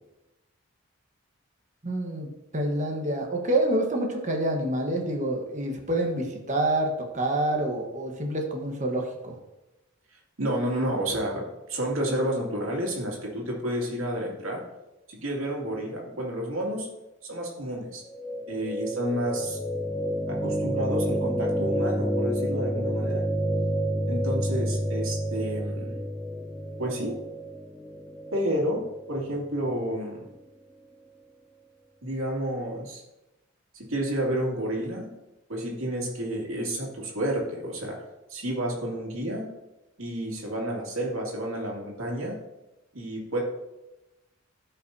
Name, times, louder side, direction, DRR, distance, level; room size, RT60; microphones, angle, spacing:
voice 1, 1.8-2.3 2.5-6.9 7.1-9.3, right 1 dB, 35° right, 2 dB, 1.2 m, -27 dB
voice 2, 10.4-11.4 11.7-14.6 15.1-16.9 17.2-18.0 18.5-19.6 20.3-23.2 24.1-25.9 26.8-27.1 28.3-28.8 29.1-30.2 32.0-33.0 33.7-35.1 35.5-38.0 38.3-39.5 40.0-42.4 42.9-43.4, right 1 dB, 90° right, -2 dB, 2.4 m, -30 dB
sound 1, 18.1-30.1, equal, 5° left, 0.3 m, -29 dB
12.5 x 5.7 x 2.7 m, 0.96 s
head